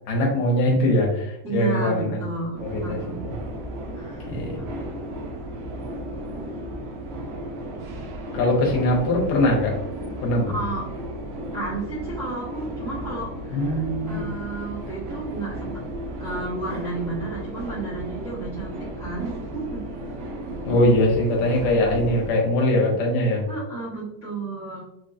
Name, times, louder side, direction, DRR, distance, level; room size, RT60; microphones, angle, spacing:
voice 1, 0.1-2.2 2.6-3.3 4.3-4.6 8.3-9.8 10.2-10.5 13.5-14.3 20.6-23.4, left 1 dB, 75° left, -1 dB, 2.5 m, -22 dB
voice 2, 1.4-3.2 3.9-4.3 10.5-10.9 11.5-15.8 16.2-19.8 23.5-24.8, right 3 dB, 40° right, -8 dB, 1.1 m, -32 dB
sound 1, 2.5-22.3, right 1 dB, 75° right, 1.4 m, -34 dB
6.2 x 3.0 x 2.5 m, 0.84 s
omnidirectional pair, 3.9 m